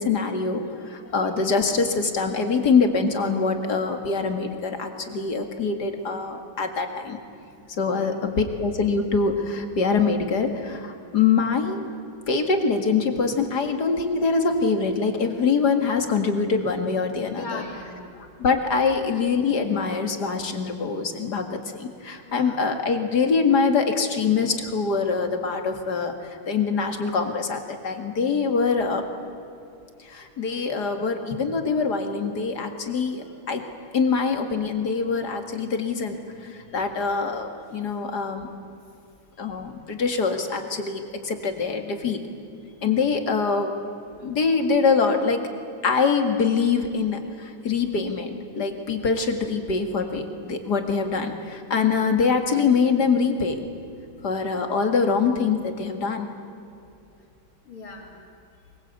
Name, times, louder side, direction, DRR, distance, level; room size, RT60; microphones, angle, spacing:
voice 1, 0.0-7.2 7.7-11.8 12.3-17.6 18.4-29.0 30.0-33.6 33.9-38.5 39.4-42.2 42.8-43.8 44.2-45.5 45.8-53.6 54.2-56.3, left 5 dB, 50° left, 5 dB, 2.6 m, -24 dB
voice 2, 7.8-8.2 17.3-18.1 22.2-22.6 37.9-38.0 57.6-58.2, left 3 dB, 85° left, 1 dB, 4.2 m, -39 dB
23.5 x 22.5 x 8.3 m, 2.6 s
omnidirectional pair, 2.3 m